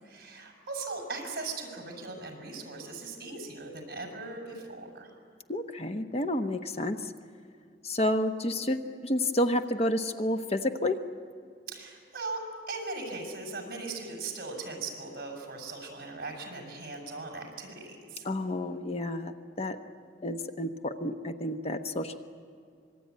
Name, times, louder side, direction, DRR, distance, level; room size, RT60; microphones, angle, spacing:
voice 1, 0.0-5.1 11.7-12.4 12.7-18.3, right 3 dB, 55° right, 3 dB, 6.3 m, -39 dB
voice 2, 5.5-7.1 7.8-11.0 18.2-19.8 20.2-22.2, left 1 dB, 35° left, 7 dB, 0.9 m, -30 dB
25.0 x 22.5 x 9.4 m, 2.4 s
head